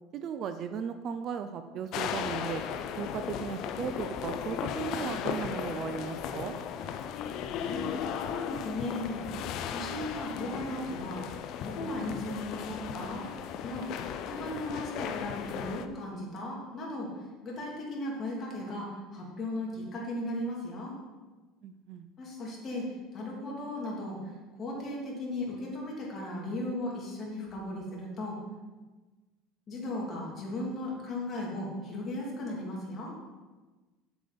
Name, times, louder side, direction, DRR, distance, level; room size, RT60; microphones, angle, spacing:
voice 1, 0.1-2.6 3.0-6.6 21.6-22.1, right 7 dB, 40° right, 9 dB, 0.5 m, -36 dB
sound 1, 1.9-15.9, left 8 dB, 50° left, 0.6 m, -36 dB
voice 2, 7.6-7.9 8.2-9.3 9.7-11.2 11.6-13.3 13.6-14.0 14.2-17.1 17.4-20.9 22.2-24.2 24.6-28.4 29.7-33.1, left 1 dB, 30° left, -3 dB, 3.0 m, -36 dB
8.3 x 7.8 x 5.3 m, 1.2 s
cardioid pair, 150°, 0 cm